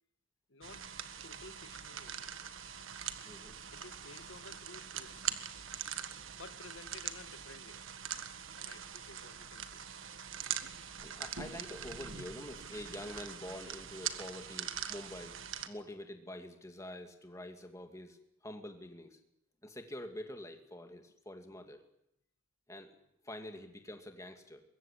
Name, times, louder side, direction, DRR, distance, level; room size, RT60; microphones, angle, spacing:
voice 1, 0.5-1.0 1.2-2.3 3.7-5.4 6.4-7.9 8.5-9.9, left 3 dB, 65° left, 1.4 m, -54 dB
sound 1, 0.6-15.7, right 9 dB, 75° right, 1.6 m, -43 dB
voice 2, 3.2-3.6 11.0-15.4 15.7-19.2 19.6-21.8 22.7-22.9 23.2-24.6, left 1 dB, 15° left, 2.5 m, -46 dB
24.0 x 22.0 x 8.5 m
head